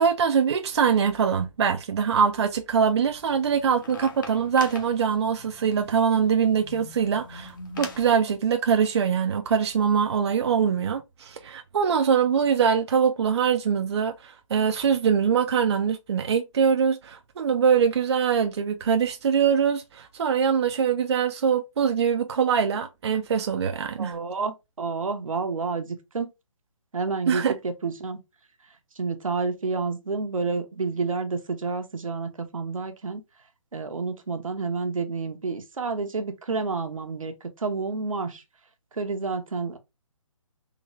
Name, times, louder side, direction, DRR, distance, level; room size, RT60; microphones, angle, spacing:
voice 1, 0.0-24.1 27.3-27.5, right 7 dB, 55° right, 0.4 m, -23 dB
sound 1, 3.0-8.1, left 4 dB, 40° left, 0.8 m, -43 dB
voice 2, 24.0-26.3 26.9-28.2 29.0-33.2 33.7-38.4 38.9-39.8, right 4 dB, 85° right, 0.9 m, -29 dB
3.8 x 2.2 x 3.0 m
hypercardioid pair, 155°, 17 cm